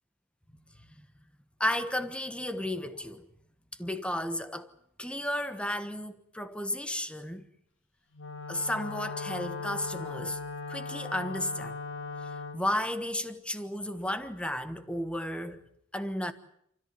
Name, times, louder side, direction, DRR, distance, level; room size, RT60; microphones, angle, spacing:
voice 1, 1.6-3.2 3.8-4.7 5.0-7.4 8.5-10.4 10.7-11.8 12.5-15.6 15.9-16.3, left 1 dB, 5° left, 1.3 m, -33 dB
Wind instrument woodwind instrument, 8.1-12.6, left 3 dB, 70° left, 2.5 m, -38 dB
28.0 x 14.0 x 9.8 m
head